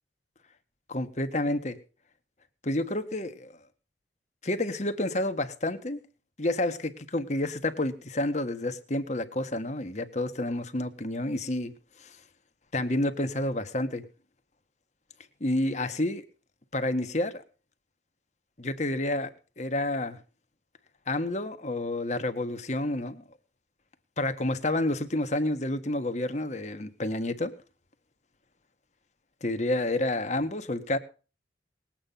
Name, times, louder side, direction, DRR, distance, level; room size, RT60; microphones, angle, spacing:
voice 1, 0.9-1.8 2.6-3.5 4.4-6.0 6.4-11.7 12.0-12.2 12.7-14.0 15.4-16.2 16.7-17.4 18.6-20.2 21.1-23.2 24.2-27.5 29.4-31.0, left 1 dB, 40° left, 9 dB, 1.6 m, -29 dB
20.0 x 9.0 x 5.6 m, 0.36 s
head